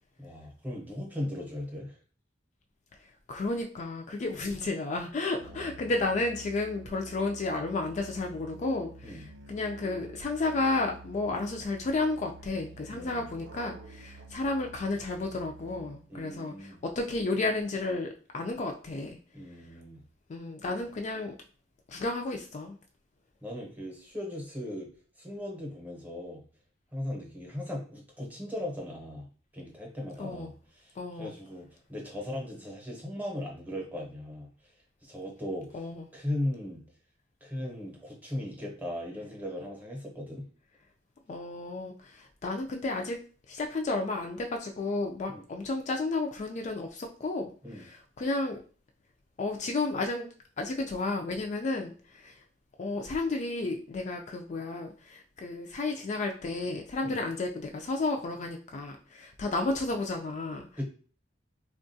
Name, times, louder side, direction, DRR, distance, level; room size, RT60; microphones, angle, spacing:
voice 1, 0.2-2.0 5.4-5.9 9.0-9.3 12.9-13.2 16.1-16.8 19.3-20.0 23.4-24.9 25.2-26.4 26.9-29.3 29.5-34.5 35.0-35.8 36.1-36.8 37.4-40.5 45.3-45.4 47.6-47.9 57.0-57.2 60.8-60.9, left 1 dB, 10° right, 0 dB, 0.8 m, -38 dB
voice 2, 3.3-19.2 20.3-21.3 21.9-22.8 30.2-30.5 31.0-31.3 35.7-36.0 41.3-43.2 43.5-48.6 49.4-50.3 50.6-52.4 52.8-60.7, left 2 dB, 40° left, 2 dB, 0.3 m, -32 dB
Musical instrument, 5.4-16.2, right 2 dB, 75° right, 0.5 m, -49 dB
3.5 x 2.3 x 2.6 m, 0.39 s
head